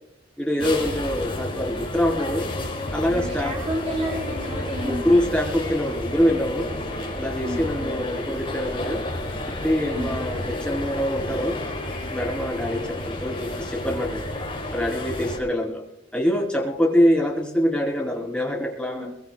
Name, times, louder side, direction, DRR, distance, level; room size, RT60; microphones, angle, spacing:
voice 1, 0.4-2.5 2.9-3.5 4.8-6.7 7.1-9.0 9.5-11.6 12.1-14.2 14.7-15.8 16.1-19.1, equal, 5° left, -1 dB, 3.2 m, -24 dB
sound 1, 0.6-15.4, left 1 dB, 25° left, 6.0 m, -31 dB
voice 2, 3.1-5.4 7.4-7.7 9.9-10.2 18.9-19.1, equal, 35° right, -2 dB, 4.5 m, -32 dB
23.0 x 21.5 x 2.2 m, 0.80 s
head